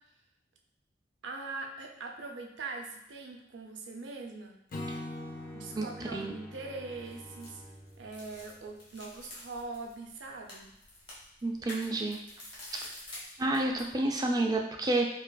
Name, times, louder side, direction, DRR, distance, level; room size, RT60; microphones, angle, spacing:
voice 1, 1.2-4.6 5.5-7.6 8.0-10.8, right 3 dB, 80° right, 2 dB, 0.5 m, -42 dB
Acoustic guitar / Strum, 4.7-8.0, left 1 dB, 50° left, 0.5 m, -43 dB
Bowed string instrument, 5.0-9.4, equal, 5° left, 0.8 m, -54 dB
voice 2, 5.7-6.3 11.4-12.2 13.4-15.0, right 2 dB, 20° right, 2 dB, 0.3 m, -29 dB
sound 1, 6.9-13.9, left 1 dB, 30° left, 1.2 m, -49 dB
4.9 x 2.4 x 2.2 m, 0.83 s
head